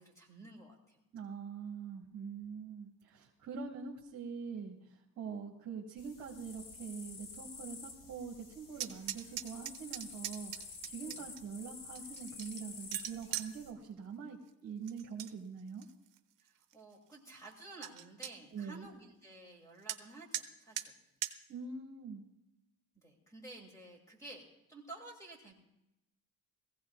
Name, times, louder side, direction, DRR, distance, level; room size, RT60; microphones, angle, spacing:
voice 1, 0.0-1.0 11.1-11.2 16.7-20.9 23.0-25.5, right 2 dB, 10° left, 1 dB, 2.6 m, -52 dB
voice 2, 1.1-15.8 18.5-18.9 21.5-22.2, right 6 dB, 45° right, -2 dB, 1.9 m, -44 dB
sound 1, 6.0-13.7, left 4 dB, 80° left, 2.0 m, -50 dB
sound 2, 8.7-11.4 12.0-13.5 14.9-15.3 15.7-16.2 16.7-16.8 17.1-17.2 17.5-17.6 17.8-18.3 19.9-20.0 20.3-20.5 20.8-20.9 21.2-21.3, right 12 dB, 60° right, 0.8 m, -40 dB
22.0 x 15.5 x 2.4 m, 0.88 s
cardioid pair, 180°, 35 cm